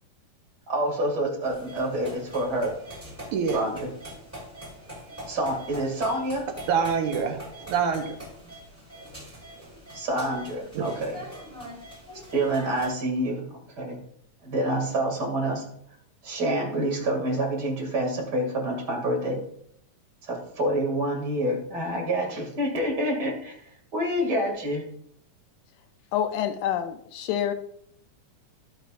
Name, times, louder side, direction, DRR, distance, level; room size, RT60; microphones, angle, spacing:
voice 1, 0.7-2.7 3.5-3.9 5.3-6.5 9.9-11.2 12.3-14.0 14.4-15.6 16.2-19.4 20.3-23.5 23.9-24.8, right 1 dB, 35° right, 0 dB, 2.6 m, -27 dB
sound 1, 1.4-12.9, equal, 5° right, 3.7 m, -43 dB
voice 2, 3.3-3.6 6.7-8.2 10.7-10.9, right 6 dB, 70° right, 3 dB, 2.5 m, -26 dB
voice 3, 26.1-27.5, left 10 dB, 75° left, 8 dB, 1.9 m, -27 dB
13.5 x 7.9 x 2.5 m, 0.69 s
omnidirectional pair, 3.8 m